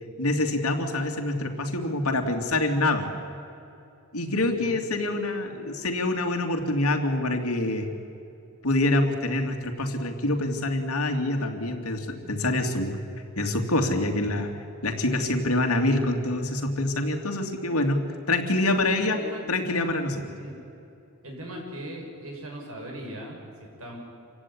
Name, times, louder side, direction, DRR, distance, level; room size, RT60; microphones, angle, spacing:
voice 1, 0.2-3.1 4.1-7.9 8.6-13.0 13.4-19.2 19.5-20.4, left 2 dB, 80° left, 4 dB, 2.9 m, -26 dB
voice 2, 4.4-4.9 19.0-19.4 20.3-20.6 21.2-24.0, right 1 dB, 70° right, 0 dB, 6.7 m, -39 dB
27.5 x 16.0 x 10.0 m, 2.7 s
head